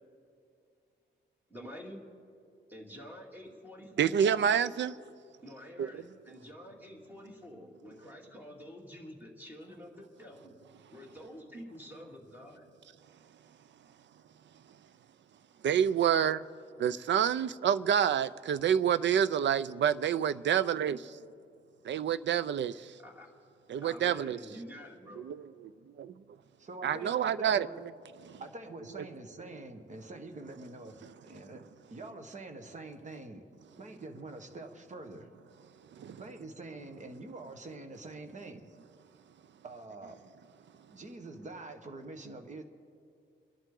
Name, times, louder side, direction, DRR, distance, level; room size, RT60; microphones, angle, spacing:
voice 1, 1.5-2.0 2.7-4.2 5.4-10.5 10.9-12.7 23.0-23.3 23.8-25.3, equal, 10° right, 2.4 m, -48 dB
voice 2, 4.0-4.9 5.8-5.9 15.6-16.4 16.8-21.2 21.8-22.9 23.7-24.4 25.3-25.5 26.0-26.1 26.8-27.7 28.2-28.4 36.0-36.2, right 8 dB, 65° right, 0.5 m, -28 dB
voice 3, 26.6-27.8 28.4-31.6 31.9-33.5 33.7-35.3 36.1-38.7 39.6-40.2 40.9-42.6, right 2 dB, 35° right, 1.3 m, -45 dB
29.5 x 11.0 x 3.8 m
wide cardioid pair, 145°, 20 cm